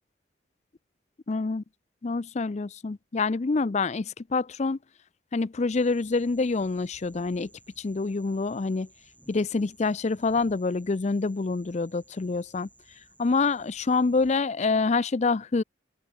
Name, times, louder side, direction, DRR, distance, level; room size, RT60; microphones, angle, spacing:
voice 1, 1.3-1.6 2.0-4.8 5.3-7.5 7.8-8.9 9.3-12.7 13.2-15.6, left 3 dB, 35° left, 0.4 m, -26 dB
sound 1, 5.7-14.4, right 2 dB, 10° right, 3.8 m, -58 dB
open air
head